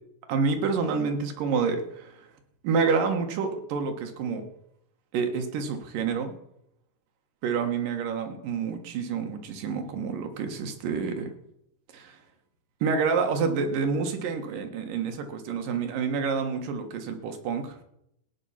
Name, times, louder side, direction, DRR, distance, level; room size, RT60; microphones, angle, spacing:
voice 1, 0.3-2.3 2.6-4.4 5.1-6.3 7.4-11.3 11.9-12.2 12.8-17.8, right 5 dB, 75° right, 5 dB, 3.2 m, -28 dB
16.5 x 9.4 x 5.8 m, 0.77 s
omnidirectional pair, 3.9 m